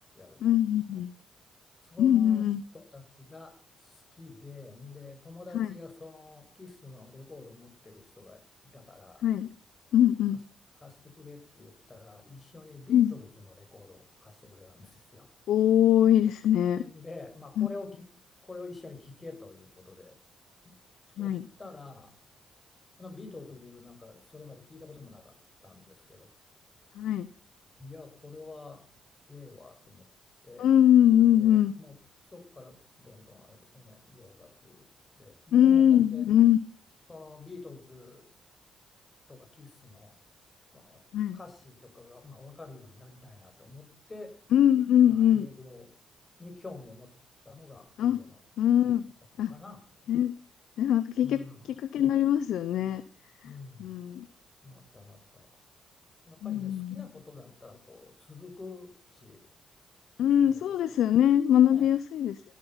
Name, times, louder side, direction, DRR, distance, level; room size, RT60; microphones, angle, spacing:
voice 1, 0.4-1.1 2.0-2.6 5.5-5.7 9.2-9.5 9.9-10.4 12.9-13.1 15.5-16.8 17.6-17.7 21.2-21.5 27.0-27.3 30.6-31.7 35.5-36.6 41.1-41.4 44.5-45.5 48.0-48.2 48.6-49.1 49.4-49.5 50.1-50.3 50.8-51.4 51.9-53.0 53.4-53.5 53.8-54.3 56.4-57.1 60.2-62.4, left 10 dB, 75° left, 14 dB, 0.8 m, -22 dB
voice 2, 1.8-3.5 3.8-9.2 10.8-13.3 13.6-15.3 16.8-18.1 18.4-20.2 20.6-20.8 21.2-22.1 23.0-25.4 25.6-26.3 27.8-28.8 29.3-30.1 30.4-30.7 31.3-32.0 32.2-34.9 35.2-36.2 37.1-38.2 39.3-40.1 40.7-41.0 41.3-44.4 45.1-45.9 46.4-47.1 47.4-48.4 49.5-49.8 51.2-51.6 53.4-54.0 54.6-55.5 56.3-59.4 60.4-60.9 61.7-61.9, left 3 dB, 25° left, 4 dB, 6.7 m, -48 dB
16.5 x 12.5 x 5.8 m, 0.42 s
supercardioid pair, 60°, 0 cm